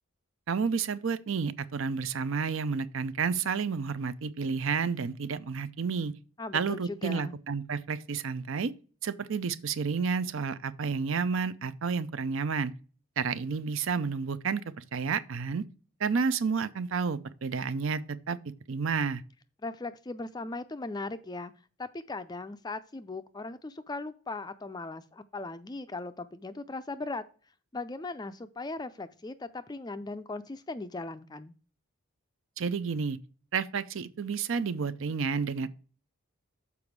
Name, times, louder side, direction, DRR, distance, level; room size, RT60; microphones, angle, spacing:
voice 1, 0.5-6.1 6.5-8.7 9.0-12.7 13.2-15.6 16.0-18.4 18.7-19.2 32.6-33.2 33.5-35.7, right 5 dB, 60° right, 0.5 m, -30 dB
voice 2, 6.4-7.4 19.6-21.5 21.8-27.2 27.7-31.5, left 3 dB, 20° left, 0.4 m, -38 dB
7.0 x 4.8 x 4.6 m
head